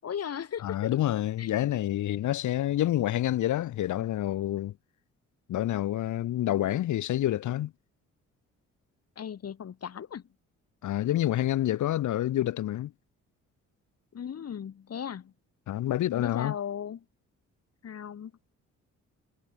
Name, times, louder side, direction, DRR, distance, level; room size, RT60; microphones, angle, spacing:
voice 1, 0.0-0.9 1.4-1.5 9.2-10.2 14.1-15.3 16.1-17.0 17.8-18.5, left 8 dB, 55° left, 5.5 m, -37 dB
voice 2, 0.6-4.7 5.5-7.7 10.8-12.9 15.7-16.6, left 13 dB, 75° left, 2.0 m, -28 dB
cardioid pair, 90°, 30 cm